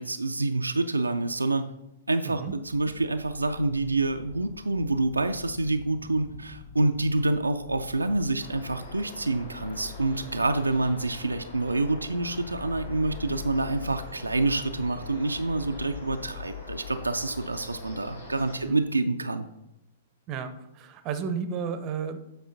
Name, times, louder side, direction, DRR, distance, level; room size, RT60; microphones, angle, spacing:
voice 1, 0.0-1.7 2.1-19.5, right 2 dB, 85° right, 6 dB, 0.4 m, -27 dB
sound 1, 2.6-16.3, left 5 dB, 25° left, 1.7 m, -49 dB
sound 2, 8.4-18.6, left 5 dB, 80° left, 2.3 m, -42 dB
voice 2, 20.3-22.2, right 6 dB, 30° right, 11 dB, 0.6 m, -33 dB
8.1 x 4.3 x 3.9 m, 0.89 s
figure-of-eight pair, 110°, 0 cm